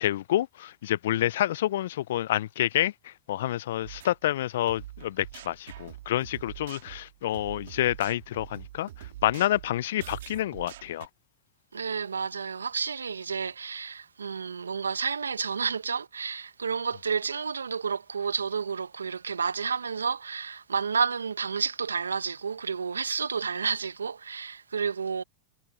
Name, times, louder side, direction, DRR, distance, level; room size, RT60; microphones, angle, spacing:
voice 1, 0.0-8.9 9.2-11.1, left 13 dB, 70° left, 0.5 m, -28 dB
sound 1, 3.8-4.2 4.7-11.1, right 13 dB, 70° right, 2.6 m, -44 dB
voice 2, 11.7-25.2, right 6 dB, 85° right, 1.2 m, -30 dB
hypercardioid pair, 95°, 0 cm